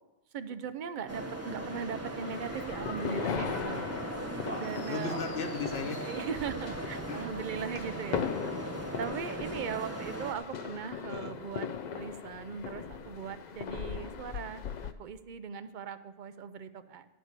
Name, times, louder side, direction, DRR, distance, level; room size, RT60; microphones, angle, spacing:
voice 1, 0.3-3.8 4.6-5.2 6.0-8.3 9.0-11.7 11.9-17.1, right 7 dB, 55° right, 12 dB, 0.6 m, -39 dB
sound 1, 1.1-10.3, right 2 dB, 15° right, 0.8 m, -39 dB
sound 2, 2.2-14.9, left 7 dB, 55° left, 0.6 m, -39 dB
voice 2, 4.2-6.0 7.1-7.3 7.6-7.7 11.1-11.3, left 4 dB, 75° left, 3 dB, 1.1 m, -38 dB
11.0 x 4.4 x 8.0 m, 1.0 s
omnidirectional pair, 1.0 m